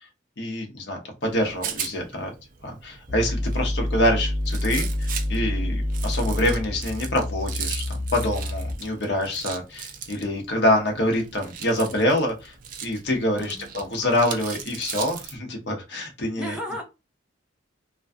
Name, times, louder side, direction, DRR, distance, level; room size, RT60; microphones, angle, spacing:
voice 1, 0.4-2.3 2.6-12.5 12.8-16.6, left 1 dB, 60° left, 1 dB, 0.7 m, -26 dB
Rattle, 1.2-15.4, right 8 dB, 45° right, 0.3 m, -38 dB
sound 1, 3.1-9.0, left 1 dB, 25° right, 1.0 m, -27 dB
voice 2, 13.4-14.0 16.4-16.8, equal, 5° right, 0 dB, 0.6 m, -35 dB
2.5 x 2.3 x 2.3 m, 0.26 s
head